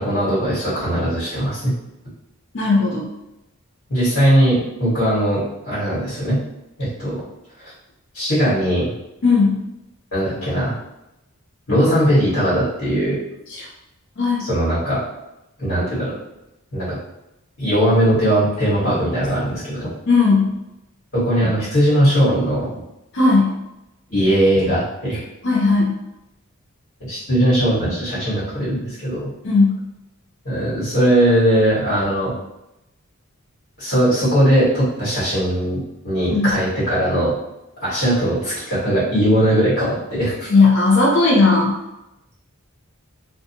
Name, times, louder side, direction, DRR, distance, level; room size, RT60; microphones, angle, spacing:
voice 1, 0.0-1.7 3.9-6.4 6.8-7.2 8.1-8.9 10.1-10.7 11.7-13.2 14.4-15.0 15.6-16.2 16.7-17.0 17.6-19.9 21.1-22.7 24.1-25.2 27.1-29.3 30.4-32.3 33.8-37.3 37.8-40.5, equal, 80° left, -10 dB, 1.3 m, -19 dB
voice 2, 2.5-3.1 9.2-9.6 13.5-13.7 14.2-14.5 20.1-20.5 23.1-23.6 25.4-26.0 29.4-29.8 36.3-36.6 40.5-41.8, left 3 dB, 55° left, -3 dB, 0.5 m, -16 dB
2.6 x 2.3 x 2.7 m, 0.90 s
head